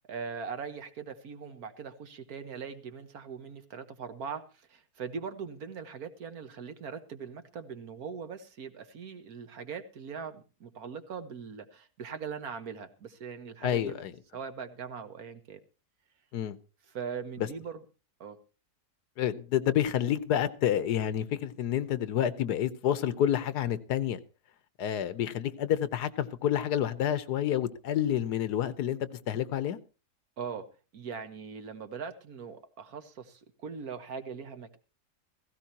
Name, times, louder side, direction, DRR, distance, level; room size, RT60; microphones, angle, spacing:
voice 1, 0.1-14.0 14.3-15.6 16.9-17.8 18.2-18.4 30.4-30.7 30.9-34.8, right 6 dB, 70° right, 1.7 m, -41 dB
voice 2, 13.6-14.1 16.3-16.6 17.4-17.5 19.2-24.2 24.8-29.8, left 10 dB, 80° left, 1.5 m, -29 dB
16.5 x 15.5 x 2.9 m
omnidirectional pair, 1.7 m